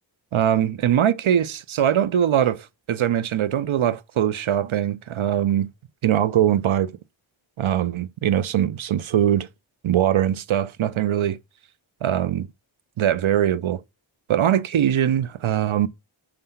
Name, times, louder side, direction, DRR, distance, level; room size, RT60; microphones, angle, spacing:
voice 1, 0.3-5.7 6.0-6.9 7.6-9.5 9.8-11.4 12.0-12.5 13.0-13.8 14.3-15.9, right 10 dB, 80° right, 0.5 m, -21 dB
5.6 x 3.4 x 5.5 m
wide cardioid pair, 55°, 48 cm